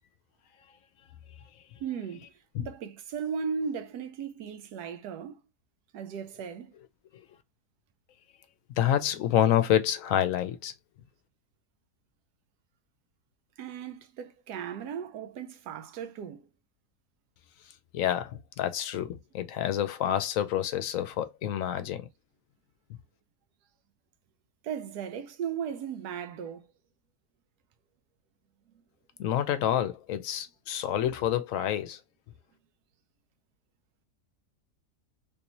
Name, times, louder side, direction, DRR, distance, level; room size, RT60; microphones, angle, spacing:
voice 1, 1.8-2.3 2.6-5.4 5.9-6.7 13.6-16.4 24.6-26.6, right 7 dB, 85° right, 1.2 m, -36 dB
voice 2, 8.8-10.7 17.9-22.1 29.2-32.0, left 11 dB, 70° left, 0.8 m, -28 dB
3.3 x 2.6 x 2.9 m
omnidirectional pair, 1.6 m